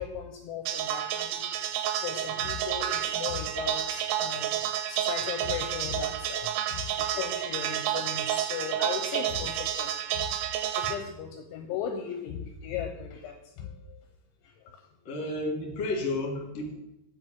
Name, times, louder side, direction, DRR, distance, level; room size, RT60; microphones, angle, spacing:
voice 1, 0.0-1.5 2.0-4.6 4.9-10.3 10.8-14.0 14.4-14.8, left 8 dB, 80° left, 4 dB, 2.9 m, -37 dB
sound 1, 0.7-10.9, right 11 dB, 90° right, 3.3 m, -30 dB
voice 2, 15.0-16.7, left 2 dB, 50° left, 1 dB, 2.1 m, -31 dB
7.8 x 5.2 x 7.4 m, 0.89 s
omnidirectional pair, 5.8 m